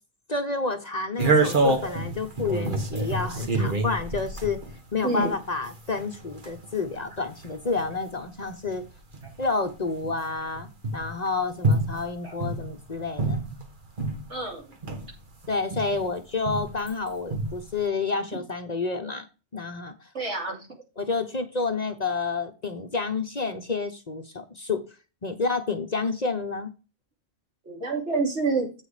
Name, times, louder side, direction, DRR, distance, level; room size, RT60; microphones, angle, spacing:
voice 1, 0.3-4.6 4.9-8.8 9.4-13.4 15.5-19.3 19.5-20.1 21.0-24.8 25.2-26.7, left 4 dB, 40° left, 6 dB, 0.9 m, -29 dB
sound 1, 1.2-14.3 14.7-16.9 17.3-17.8, right 2 dB, 45° right, 1.6 m, -28 dB
voice 2, 14.3-14.6 20.1-20.7 27.6-28.7, right 3 dB, 70° right, 0 dB, 3.3 m, -27 dB
8.0 x 6.1 x 4.9 m, 0.31 s
omnidirectional pair, 1.2 m